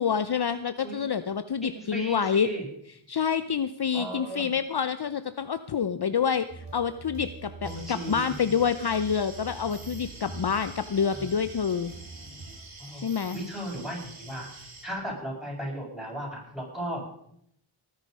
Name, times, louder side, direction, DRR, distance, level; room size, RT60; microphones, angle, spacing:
voice 1, 0.0-2.5 3.1-11.9 13.0-13.4, left 7 dB, 50° left, 11 dB, 0.7 m, -27 dB
voice 2, 1.7-2.7 3.9-4.5 7.6-8.4 11.1-11.3 12.8-17.0, right 1 dB, ahead, -4 dB, 7.9 m, -36 dB
sound 1, 6.5-12.6, right 3 dB, 90° right, 3.9 m, -44 dB
sound 2, 7.6-14.8, right 3 dB, 65° right, 3.2 m, -47 dB
19.0 x 9.8 x 5.4 m, 0.71 s
wide cardioid pair, 60°, 49 cm